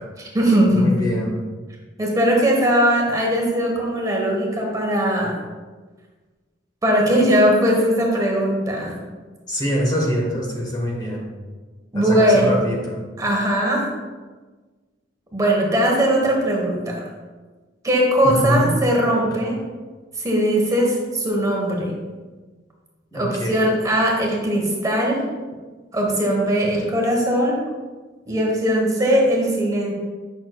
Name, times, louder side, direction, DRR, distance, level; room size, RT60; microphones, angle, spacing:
voice 1, 0.2-0.9 2.0-5.4 6.8-8.9 11.9-12.5 13.2-13.9 15.3-17.1 17.8-19.5 20.2-21.9 23.1-25.2 25.9-27.6 28.3-29.9, equal, 20° right, -1 dB, 1.1 m, -19 dB
voice 2, 0.7-1.4 9.5-11.3 11.9-13.0 18.2-18.7 19.4-19.5 23.1-23.6, equal, 20° left, -2 dB, 1.0 m, -24 dB
8.6 x 6.0 x 2.3 m, 1.3 s
head